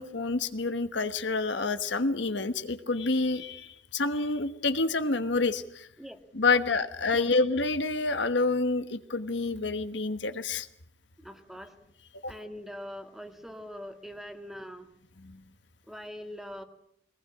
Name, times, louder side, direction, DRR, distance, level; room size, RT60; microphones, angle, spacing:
voice 1, 0.0-5.9 6.3-10.7 12.2-12.3 15.2-15.4, left 3 dB, 65° left, 10 dB, 1.3 m, -28 dB
voice 2, 11.2-11.7 12.3-14.9 15.9-16.6, equal, ahead, 7 dB, 1.7 m, -42 dB
22.0 x 19.5 x 8.5 m, 0.72 s
head